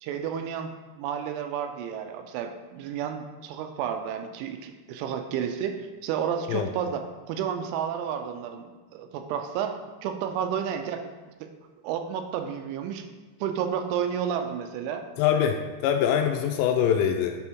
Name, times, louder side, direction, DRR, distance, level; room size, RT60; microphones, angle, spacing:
voice 1, 0.0-11.0 11.4-11.5 11.8-13.1 13.4-15.0, right 8 dB, 85° right, 6 dB, 2.9 m, -31 dB
voice 2, 15.2-15.5 15.8-17.4, left 9 dB, 85° left, 4 dB, 2.6 m, -23 dB
9.4 x 3.5 x 4.5 m, 1.3 s
omnidirectional pair, 5.4 m